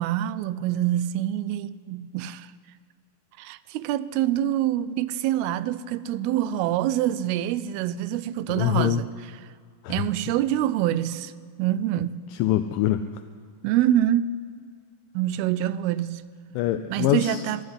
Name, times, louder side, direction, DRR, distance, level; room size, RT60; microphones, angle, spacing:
voice 1, 0.0-2.5 3.4-9.1 9.9-11.3 11.6-12.2 13.6-14.4 15.1-16.2 16.9-17.6, right 12 dB, 90° right, 2.5 m, -25 dB
voice 2, 8.5-9.0 9.8-10.1 12.3-13.0 16.5-17.4, left 13 dB, 85° left, 1.9 m, -24 dB
12.5 x 12.0 x 9.4 m
omnidirectional pair, 4.4 m